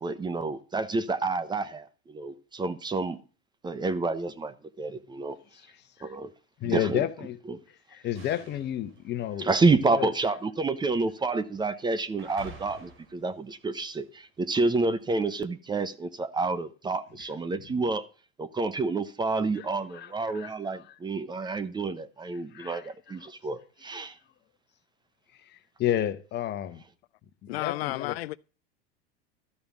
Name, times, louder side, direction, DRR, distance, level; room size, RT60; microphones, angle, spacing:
voice 1, 0.0-3.2 3.6-5.4 6.0-6.3 6.6-7.0 7.5-7.6 9.4-18.0 18.4-24.1, right 3 dB, 15° right, 0.7 m, -29 dB
voice 2, 5.5-6.1 6.6-7.4 7.7-9.5 9.9-10.1 19.5-20.9 22.3-23.3 25.3-26.8 27.4-28.2, left 11 dB, 35° left, 1.1 m, -32 dB
sound 1, 8.1-10.6 11.2-11.6 12.2-14.1, right 3 dB, 75° right, 3.5 m, -50 dB
voice 3, 27.5-28.4, left 18 dB, 75° left, 0.4 m, -32 dB
13.0 x 5.2 x 7.2 m
supercardioid pair, 120°, 31 cm